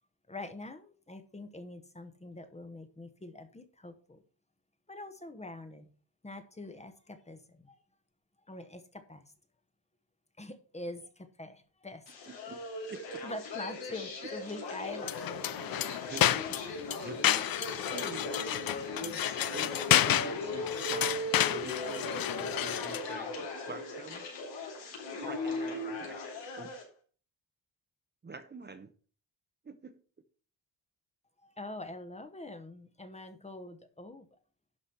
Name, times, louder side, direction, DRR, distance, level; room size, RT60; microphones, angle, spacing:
voice 1, 0.3-4.2 4.9-5.9 6.2-7.8 8.5-9.2 10.4-12.1 13.2-15.2 31.4-34.4, left 2 dB, 15° left, 1.0 m, -44 dB
sound 1, 12.1-26.8, left 2 dB, 90° left, 4.2 m, -38 dB
voice 2, 12.3-12.6 12.9-13.2 16.0-16.6 17.0-17.2 17.9-18.3 19.0-24.3 25.1-26.2 26.6-26.8 28.2-28.9 29.6-30.0, right 4 dB, 25° right, 0.8 m, -46 dB
sound 2, 15.0-23.1, left 12 dB, 55° left, 0.5 m, -31 dB
11.5 x 4.9 x 5.6 m
wide cardioid pair, 145°, 43 cm